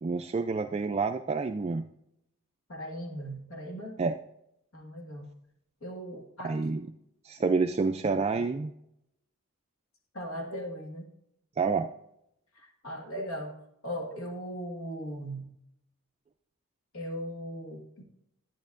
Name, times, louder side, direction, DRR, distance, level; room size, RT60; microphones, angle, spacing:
voice 1, 0.0-1.8 4.0-4.2 6.4-6.9 7.2-8.7 11.6-11.9, right 4 dB, 30° right, 5 dB, 0.3 m, -28 dB
voice 2, 2.7-4.0 4.7-5.3 5.8-6.6 10.1-11.1 12.5-13.5 13.8-15.5 16.9-18.0, equal, 75° left, 2 dB, 1.7 m, -38 dB
10.5 x 8.9 x 2.5 m, 0.79 s
head